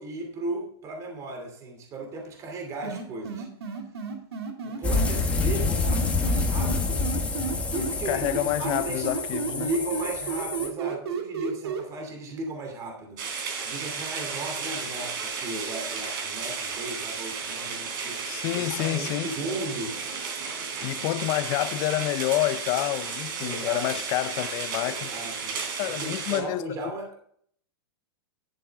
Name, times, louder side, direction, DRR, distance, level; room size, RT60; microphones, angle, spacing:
voice 1, 0.0-3.5 4.6-7.0 7.7-9.1 9.5-20.0 23.4-23.9 24.8-25.5 25.9-27.2, right 2 dB, 25° right, 2.7 m, -36 dB
sound 1, 2.8-5.1 5.9-7.9 8.2-11.8, right 5 dB, 85° right, 2.5 m, -32 dB
sound 2, 4.8-10.7, left 3 dB, 10° left, 1.4 m, -27 dB
voice 2, 5.3-5.7 8.1-9.7 18.2-19.3 20.8-25.1 25.8-26.9, left 16 dB, 35° left, 0.5 m, -28 dB
sound 3, 13.2-26.4, right 5 dB, 55° right, 3.3 m, -33 dB
11.5 x 7.9 x 3.6 m
supercardioid pair, 150°, 13 cm